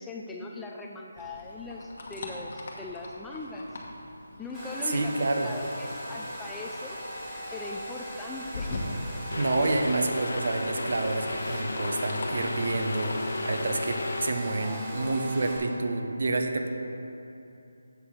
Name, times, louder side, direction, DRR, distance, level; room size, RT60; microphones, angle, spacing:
voice 1, 0.0-3.7 4.4-7.0 7.5-8.8 14.5-15.1, left 2 dB, 5° left, -1 dB, 0.3 m, -40 dB
sound 1, 1.2-13.2, left 2 dB, 50° left, 1.2 m, -42 dB
Domestic sounds home sounds, 4.5-15.6, equal, 15° right, 1.6 m, -39 dB
voice 2, 4.8-5.5 9.4-16.7, right 2 dB, 55° right, 4 dB, 0.8 m, -28 dB
sound 2, 9.3-14.3, left 3 dB, 75° left, 0.4 m, -34 dB
7.9 x 4.1 x 6.3 m, 2.9 s
figure-of-eight pair, 165°, 0 cm